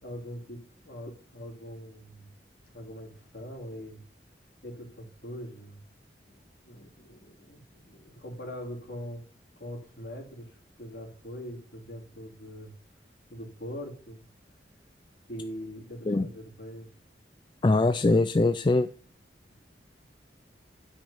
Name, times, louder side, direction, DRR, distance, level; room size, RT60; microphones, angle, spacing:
voice 1, 0.0-2.3 2.7-4.0 4.6-5.8 6.3-6.4 6.7-9.2 9.6-10.5 10.8-12.7 13.3-14.2 15.3-16.9, equal, 55° left, 0 dB, 2.9 m, -42 dB
voice 2, 17.6-18.9, left 2 dB, 25° left, 10 dB, 0.3 m, -22 dB
9.1 x 5.1 x 5.5 m, 0.43 s
head